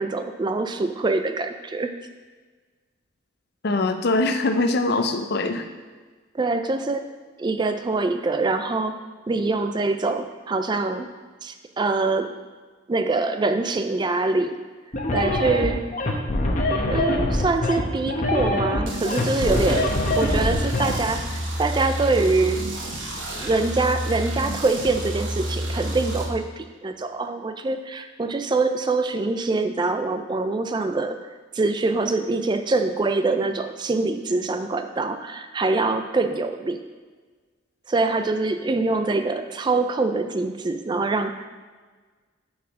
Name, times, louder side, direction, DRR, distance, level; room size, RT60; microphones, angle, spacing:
voice 1, 0.0-1.9 6.3-7.1 7.4-9.0 9.3-11.1 11.4-12.3 12.9-14.6 15.1-15.8 16.9-22.7 23.4-31.2 31.5-36.8 37.9-41.5, right 3 dB, 25° right, 8 dB, 0.3 m, -24 dB
voice 2, 3.6-5.7, left 2 dB, 55° left, 7 dB, 0.6 m, -22 dB
sound 1, 14.9-20.9, left 1 dB, 40° left, 1.0 m, -23 dB
sound 2, 18.9-26.2, equal, 75° right, 1.3 m, -30 dB
6.8 x 4.9 x 6.2 m, 1.4 s
head